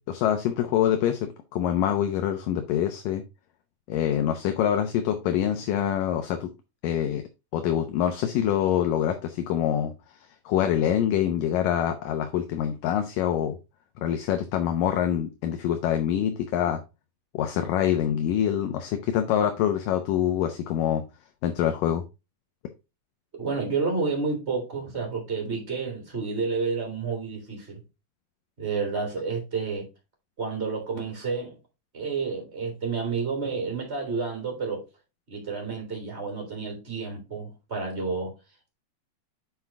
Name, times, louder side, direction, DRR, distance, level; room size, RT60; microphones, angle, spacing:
voice 1, 0.0-3.2 3.9-6.5 6.8-7.2 7.5-9.9 10.5-13.6 14.0-16.8 17.3-21.0 21.4-22.0, left 10 dB, 75° left, 2.3 m, -25 dB
voice 2, 23.4-27.8 28.6-29.9 30.4-31.5 31.9-34.8 35.3-38.3, right 4 dB, 15° right, 3.4 m, -30 dB
7.8 x 5.9 x 3.5 m
omnidirectional pair, 4.3 m